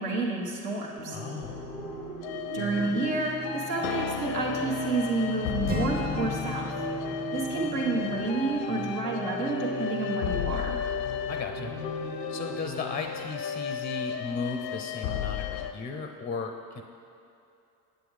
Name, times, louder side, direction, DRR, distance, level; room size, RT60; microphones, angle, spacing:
voice 1, 0.0-1.2 2.5-6.7 7.3-10.7, right 3 dB, 80° right, -2 dB, 1.4 m, -30 dB
sound 1, 1.0-13.0, right 3 dB, 50° right, 1.3 m, -39 dB
voice 2, 1.1-1.6 11.3-11.7 12.3-16.8, left 4 dB, 20° left, 5 dB, 0.4 m, -35 dB
sound 2, 1.4-15.7, left 9 dB, 85° left, 0.5 m, -34 dB
Acoustic guitar, 5.6-9.6, left 1 dB, 20° right, 0.7 m, -37 dB
8.3 x 7.8 x 3.2 m, 2.7 s
hypercardioid pair, 70°, 48 cm